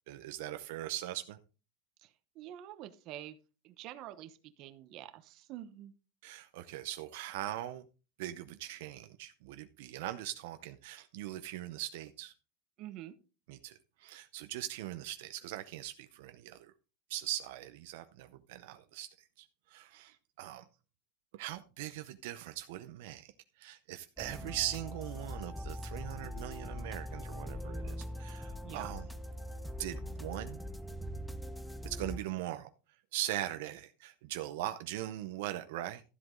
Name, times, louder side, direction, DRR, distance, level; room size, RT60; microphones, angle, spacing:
voice 1, 0.1-1.4 6.2-7.9 8.2-12.3 13.5-16.7 17.1-19.1 19.4-20.6 21.3-23.3 23.6-29.1 29.8-30.6 31.8-32.7 33.1-36.0, right 14 dB, 65° right, 0.7 m, -41 dB
voice 2, 2.0-3.4 3.6-5.9 12.8-13.1 28.6-29.0, right 12 dB, 40° right, 1.0 m, -47 dB
sound 1, 24.2-32.2, equal, ahead, 0.5 m, -42 dB
13.0 x 7.9 x 3.8 m
supercardioid pair, 165°, 0 cm